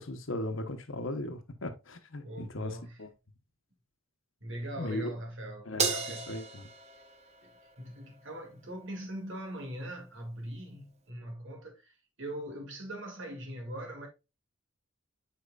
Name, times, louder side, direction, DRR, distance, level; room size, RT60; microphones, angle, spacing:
voice 1, 0.0-3.1 4.8-5.1 5.7-5.9 6.3-6.7, left 1 dB, 70° left, 1.0 m, -37 dB
voice 2, 2.2-3.0 4.4-6.3 7.4-14.1, right 1 dB, 65° right, 2.4 m, -41 dB
Crash cymbal, 5.8-8.3, right 5 dB, 35° right, 0.9 m, -35 dB
8.6 x 5.2 x 2.4 m
head